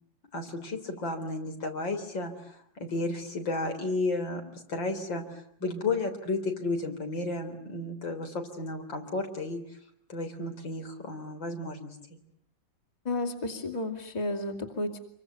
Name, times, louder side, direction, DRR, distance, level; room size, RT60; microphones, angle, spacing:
voice 1, 0.3-4.4 4.7-5.2 5.6-9.6 10.1-11.9, left 2 dB, 70° left, 5 dB, 4.4 m, -33 dB
voice 2, 13.0-15.0, left 2 dB, 20° left, 3 dB, 2.6 m, -32 dB
27.5 x 23.5 x 9.1 m, 0.66 s
omnidirectional pair, 2.1 m